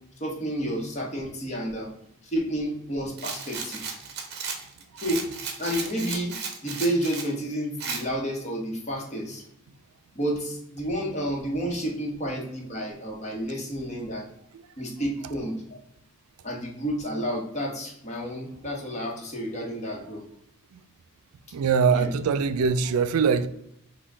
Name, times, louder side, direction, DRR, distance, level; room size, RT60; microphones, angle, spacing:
voice 1, 0.2-1.9 2.2-3.8 5.0-5.3 5.6-6.4 6.6-9.4 10.1-14.3 14.8-15.8 16.4-20.2 21.9-22.1, equal, 30° left, 1.0 m, -30 dB
Rattle, 3.2-7.3 7.8-8.0, right 5 dB, 50° right, 0.7 m, -35 dB
voice 2, 21.5-23.5, right 5 dB, 90° right, 0.3 m, -23 dB
5.5 x 2.2 x 3.7 m
head